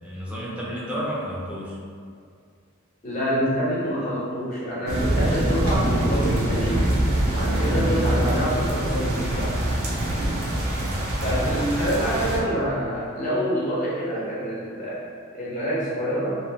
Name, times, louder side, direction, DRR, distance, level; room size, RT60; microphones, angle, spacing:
voice 1, 0.0-1.8 7.5-8.0 10.5-11.0, equal, 5° right, -7 dB, 0.5 m, -32 dB
voice 2, 3.0-6.9 7.3-9.6 11.2-16.4, equal, 40° left, -8 dB, 0.8 m, -26 dB
sound 1, 4.9-12.4, right 1 dB, 90° right, 0.6 m, -24 dB
2.8 x 2.4 x 2.7 m, 2.2 s
head